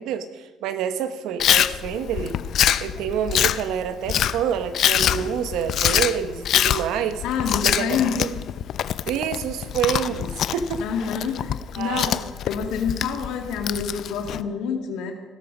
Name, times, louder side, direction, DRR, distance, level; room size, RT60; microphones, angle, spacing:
voice 1, 0.0-2.4 2.8-7.2 7.6-8.3 9.1-10.8 11.8-12.1, right 8 dB, 85° right, 10 dB, 1.2 m, -27 dB
Chewing mastication, 1.4-14.4, left 10 dB, 60° left, 0.5 m, -24 dB
voice 2, 7.2-8.2 10.8-15.1, left 6 dB, 90° left, 3 dB, 2.2 m, -27 dB
17.0 x 13.0 x 5.4 m, 1.2 s
cardioid pair, 120°, 0 cm